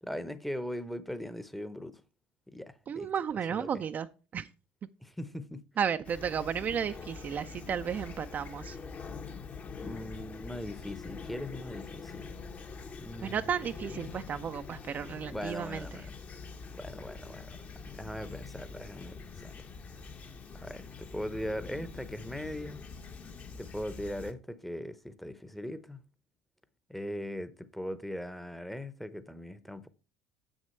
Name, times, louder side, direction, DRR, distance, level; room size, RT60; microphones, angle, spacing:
voice 1, 0.1-2.0 2.5-3.1 3.5-3.7 5.0-5.6 9.8-12.3 13.0-13.5 13.8-13.9 15.3-16.1 16.7-19.7 20.6-22.8 23.6-26.0 26.9-29.9, equal, 5° left, 0.8 m, -40 dB
voice 2, 2.9-4.1 4.3-4.5 5.8-8.8 13.2-16.0, right 8 dB, 40° right, 0.4 m, -33 dB
Fowl / Chirp tweet, 6.0-24.3, left 5 dB, 35° left, 0.9 m, -45 dB
7.3 x 6.3 x 4.4 m
hypercardioid pair, 70°, 5 cm